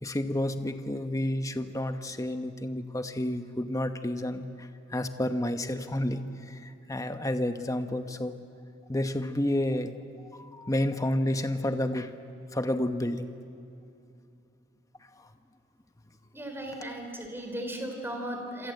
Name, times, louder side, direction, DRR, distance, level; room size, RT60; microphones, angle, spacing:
voice 1, 0.0-8.4 8.9-9.9 10.4-12.1 12.5-13.3 15.2-15.3, left 1 dB, 20° left, 8 dB, 1.2 m, -30 dB
voice 2, 16.3-18.7, right 1 dB, 10° right, 3 dB, 4.3 m, -36 dB
28.0 x 26.5 x 8.0 m, 2.6 s
head